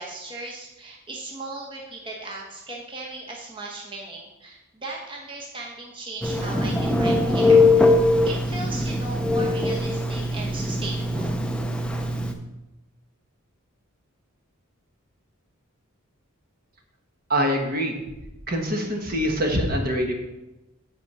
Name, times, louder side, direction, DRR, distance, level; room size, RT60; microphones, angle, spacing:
voice 1, 0.0-7.9 8.2-11.3, right 2 dB, 25° right, -2 dB, 1.1 m, -37 dB
Telephone, 6.2-12.3, left 2 dB, 5° left, 0.5 m, -21 dB
voice 2, 17.3-18.0 18.5-20.1, equal, 45° right, 2 dB, 1.3 m, -24 dB
8.2 x 4.7 x 6.7 m, 0.99 s
head